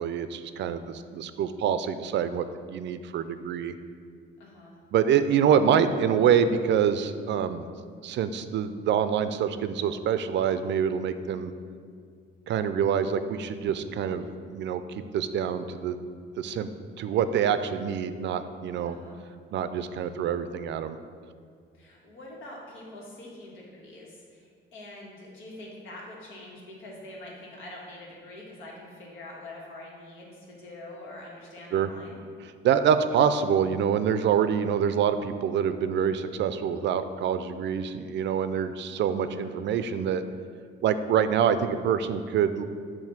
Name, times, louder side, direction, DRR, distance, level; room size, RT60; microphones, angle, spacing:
voice 1, 0.0-3.7 4.9-7.7 8.0-11.5 12.5-16.0 16.4-16.7 17.0-19.0 19.5-21.0 31.7-31.9 32.4-40.2 40.8-42.6, right 8 dB, 65° right, 11 dB, 0.4 m, -26 dB
voice 2, 4.4-4.8 18.8-19.2 21.7-32.2 39.2-39.5, left 1 dB, 85° left, -3 dB, 1.5 m, -45 dB
7.3 x 2.7 x 5.8 m, 2.2 s
cardioid pair, 90°, 20 cm